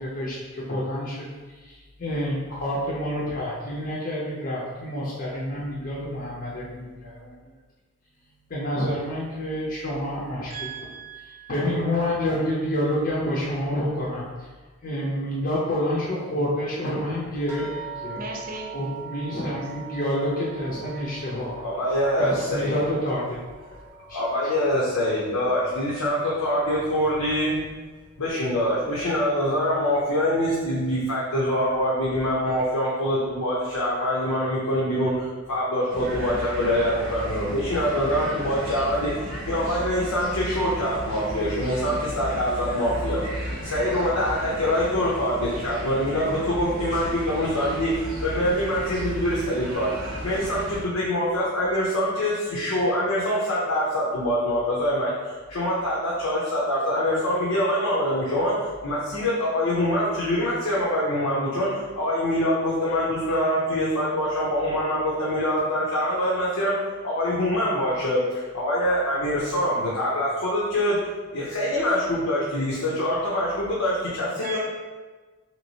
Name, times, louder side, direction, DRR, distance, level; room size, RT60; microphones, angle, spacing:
voice 1, 0.0-7.5 8.5-10.5 11.5-14.5 14.8-17.7 18.0-18.2 18.7-21.6 22.2-23.4 24.1-24.2, equal, 40° left, -6 dB, 0.5 m, -28 dB
voice 2, 10.5-11.5 18.2-18.7 74.4-74.6, right 4 dB, 40° right, 1 dB, 0.4 m, -37 dB
sound 1, 17.5-26.3 26.6-27.5 28.2-28.3 28.8-28.9, right 5 dB, 10° right, 0.7 m, -43 dB
voice 3, 21.6-22.8 24.1-27.6 28.2-74.6, equal, 90° left, -6 dB, 0.6 m, -25 dB
sound 2, 35.9-50.8, right 1 dB, 70° right, 0.7 m, -34 dB
3.4 x 3.0 x 2.7 m, 1.3 s
head